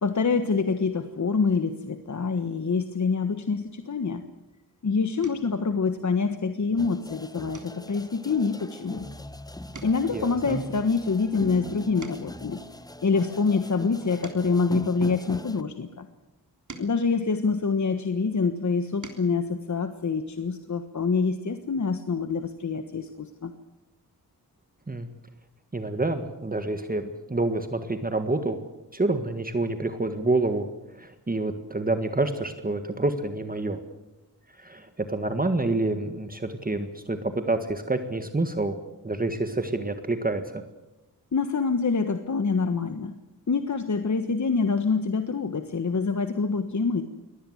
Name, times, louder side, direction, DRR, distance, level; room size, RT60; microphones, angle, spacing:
voice 1, 0.0-4.2 4.8-9.1 9.8-12.6 13.0-16.1 16.8-23.5 41.3-43.1 43.5-47.0, left 4 dB, 50° left, 8 dB, 1.4 m, -26 dB
sound 1, 5.2-5.6 6.1-6.5 6.8-7.0 7.5-9.3 9.6-12.5 13.1-15.6 16.3-18.1 18.7-19.4 20.8-20.9 21.2-21.4, right 3 dB, 50° right, 3.4 m, -49 dB
sound 2, 6.8-15.6, left 1 dB, 10° left, 0.9 m, -41 dB
voice 2, 10.1-10.6 24.9-25.1 25.7-28.6 28.9-30.7 30.9-33.8 34.6-38.8 39.0-40.6, right 2 dB, 25° right, 8 dB, 1.7 m, -28 dB
24.0 x 18.5 x 8.0 m, 0.95 s
wide cardioid pair, 95°, 37 cm